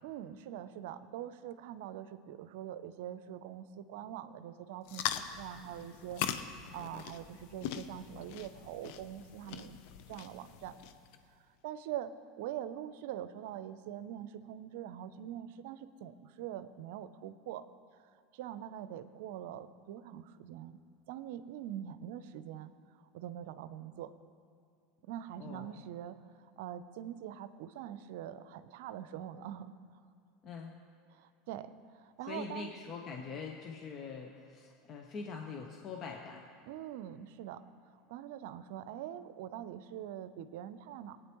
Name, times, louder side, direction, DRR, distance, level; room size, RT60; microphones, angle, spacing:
voice 1, 0.0-6.2 6.7-9.8 10.1-10.8 11.6-17.6 18.3-20.8 21.1-22.7 23.1-24.1 25.0-26.2 26.4-29.7 31.1-32.7 36.6-37.6 38.1-41.2, right 11 dB, 70° right, 13 dB, 0.5 m, -43 dB
sound 1, 4.8-11.2, left 10 dB, 65° left, 0.6 m, -41 dB
voice 2, 25.4-25.8 30.4-30.7 32.3-36.4, left 5 dB, 45° left, 2 dB, 1.0 m, -43 dB
19.0 x 9.2 x 3.1 m, 2.5 s
hypercardioid pair, 85°, 0 cm